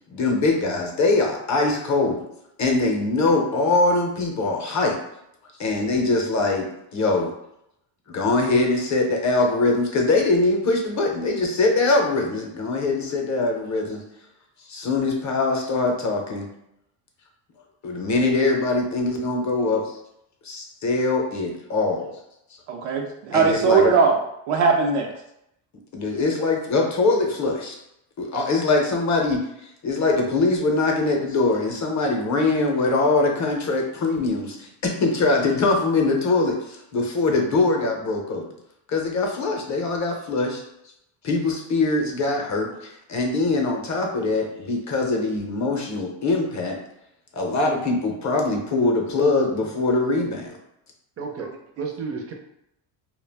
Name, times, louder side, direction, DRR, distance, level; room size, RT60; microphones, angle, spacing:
voice 1, 0.1-2.2 2.6-5.0 5.6-7.3 8.1-14.0 14.7-16.5 17.8-19.8 20.4-22.1 23.3-23.9 25.9-27.8 28.2-29.4 29.8-38.5 38.9-40.6 41.2-46.8 47.3-50.6, left 3 dB, 35° left, 2 dB, 0.6 m, -22 dB
voice 2, 22.7-24.2 24.5-25.1 51.4-51.5, right 5 dB, 85° right, 1 dB, 0.6 m, -20 dB
voice 3, 51.2-52.3, right 5 dB, 30° right, 2 dB, 0.5 m, -32 dB
2.3 x 2.2 x 3.4 m, 0.80 s
cardioid pair, 110°, 49 cm